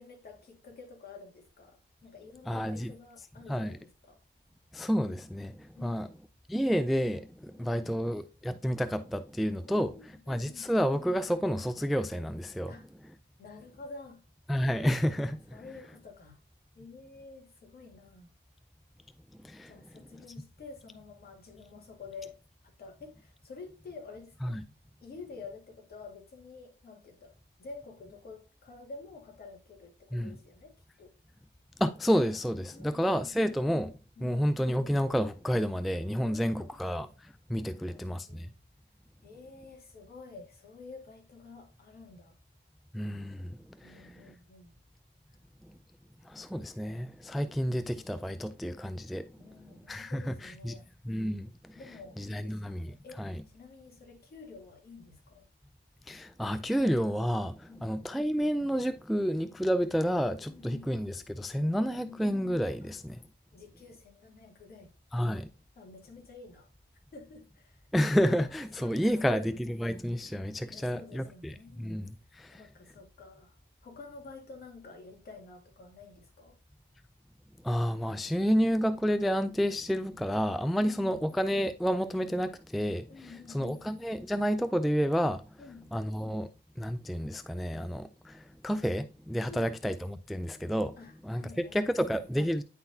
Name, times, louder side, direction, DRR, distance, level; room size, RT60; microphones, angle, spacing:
voice 1, 0.0-4.2 5.7-6.1 7.6-8.0 9.7-10.7 12.7-12.9 13.4-14.2 15.5-16.4 16.8-18.3 19.7-22.4 22.8-24.6 25.0-31.1 32.7-33.3 34.2-34.5 36.2-37.0 37.7-38.5 39.2-42.4 43.8-44.8 49.4-50.9 51.8-53.2 53.5-55.5 57.7-58.0 60.4-61.1 61.7-62.3 62.8-62.9 63.5-65.4 65.8-66.7 67.1-67.9 68.8-69.6 70.7-71.9 72.5-76.6 80.7-81.2 83.1-83.9 85.6-85.9 89.5-89.8 91.0-92.3, left 4 dB, 50° left, 1.9 m, -50 dB
voice 2, 2.5-2.9 3.5-3.8 4.7-6.1 6.5-9.9 10.3-12.7 14.5-15.6 19.4-19.7 24.4-24.6 30.1-30.3 31.8-33.9 34.2-38.5 42.9-44.3 46.2-49.3 49.9-50.7 51.0-51.8 52.2-53.4 56.1-63.2 65.1-65.5 67.9-72.6 77.6-85.4 85.9-86.5 86.8-91.0 91.2-92.6, equal, ahead, 0.3 m, -30 dB
9.6 x 4.0 x 2.7 m
cardioid pair, 90°, 20 cm